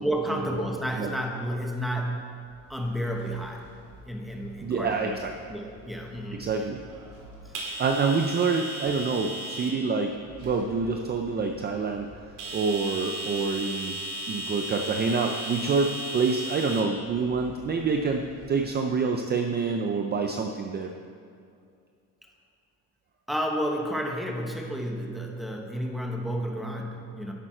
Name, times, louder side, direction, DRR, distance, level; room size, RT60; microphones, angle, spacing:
voice 1, 0.0-2.4 2.7-3.7 4.0-5.1 5.5-6.5 7.4-7.5 23.3-27.3, equal, ahead, 0 dB, 1.1 m, -31 dB
sound 1, 2.5-18.6, right 1 dB, 65° right, 2.3 m, -38 dB
voice 2, 4.6-5.3 6.4-6.8 7.8-12.1 12.5-14.0 14.3-20.9, right 4 dB, 30° right, 4 dB, 0.5 m, -27 dB
11.0 x 8.5 x 4.4 m, 2.3 s
cardioid pair, 140°, 33 cm